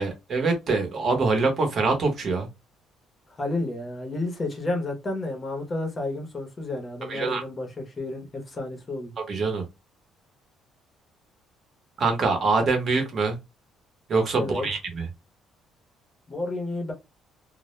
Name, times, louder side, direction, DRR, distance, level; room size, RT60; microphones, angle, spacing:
voice 1, 0.0-2.5 7.1-7.4 9.3-9.6 12.0-13.4 14.1-15.1, right 3 dB, 35° right, 0.8 m, -24 dB
voice 2, 3.4-9.1 14.4-14.7 16.3-16.9, left 2 dB, 25° left, 0.6 m, -31 dB
2.1 x 2.0 x 3.0 m
cardioid pair, 155°, 0 cm